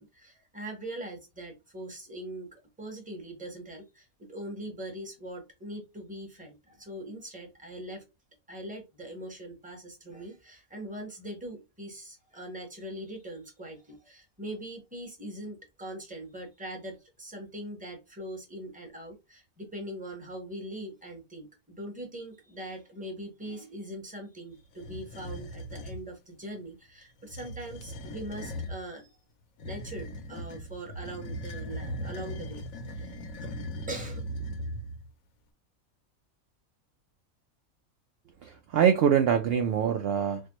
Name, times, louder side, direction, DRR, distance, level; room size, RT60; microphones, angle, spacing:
voice 1, 0.0-8.0 8.5-29.1 29.6-32.6 32.9-33.5 33.9-34.2, right 1 dB, 5° right, 0.9 m, -41 dB
sound 1, 24.7-26.0 27.2-28.8 29.6-35.1, equal, 80° left, 1.1 m, -38 dB
voice 2, 38.4-40.4, right 8 dB, 65° right, 0.6 m, -24 dB
4.3 x 2.1 x 2.9 m
omnidirectional pair, 1.4 m